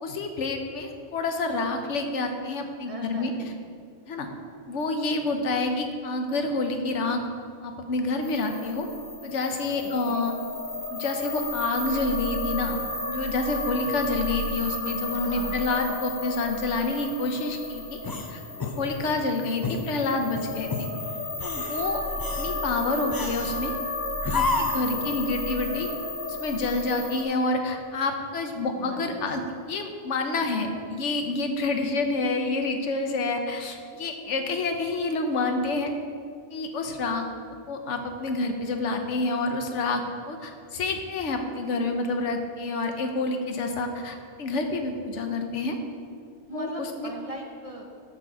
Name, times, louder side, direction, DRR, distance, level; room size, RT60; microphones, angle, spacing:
voice 1, 0.0-3.3 4.1-4.3 4.7-7.3 7.6-8.9 9.2-10.3 10.9-12.8 13.1-18.0 18.3-20.9 21.4-22.0 22.4-23.7 24.2-25.9 26.3-29.4 29.7-35.9 36.5-37.3 37.7-45.8 46.5-47.1, left 3 dB, 90° left, 5 dB, 1.2 m, -28 dB
voice 2, 2.8-3.4 9.8-10.3 15.1-15.7 28.8-29.2 46.5-47.8, right 2 dB, 35° right, 2 dB, 0.7 m, -40 dB
sound 1, 8.2-27.2, left 2 dB, 70° left, 1.6 m, -33 dB
sound 2, 18.0-19.2 19.6-19.9 20.3-20.9 21.3-21.8 22.2-22.5 23.1-23.6 24.2-24.9, left 3 dB, 35° left, 0.3 m, -30 dB
13.0 x 4.4 x 4.8 m, 2.2 s
omnidirectional pair, 1.2 m